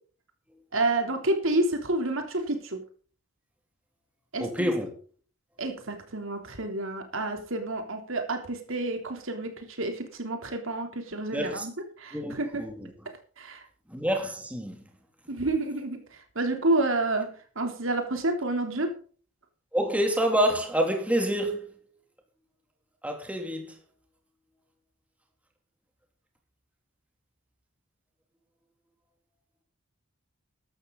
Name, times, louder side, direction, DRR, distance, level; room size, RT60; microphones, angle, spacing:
voice 1, 0.7-2.8 4.3-4.7 5.6-11.7 12.0-12.7 13.4-13.6 15.3-16.0 16.4-18.9, right 2 dB, 65° right, 3.4 m, -29 dB
voice 2, 4.4-5.0 11.3-11.7 12.1-12.9 13.9-14.8 19.7-21.7 23.0-23.7, equal, 5° right, 3.0 m, -27 dB
15.5 x 12.0 x 4.0 m
head